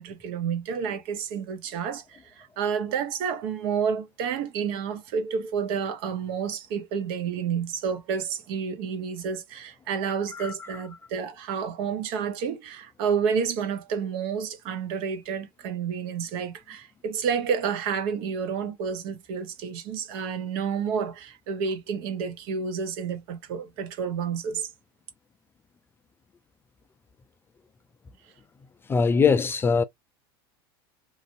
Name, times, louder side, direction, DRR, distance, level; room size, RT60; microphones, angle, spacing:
voice 1, 0.0-24.7, right 6 dB, 65° right, 1.0 m, -30 dB
voice 2, 10.3-10.7 28.9-29.8, left 5 dB, 20° left, 0.3 m, -22 dB
3.1 x 2.5 x 2.6 m
supercardioid pair, 110°, 12 cm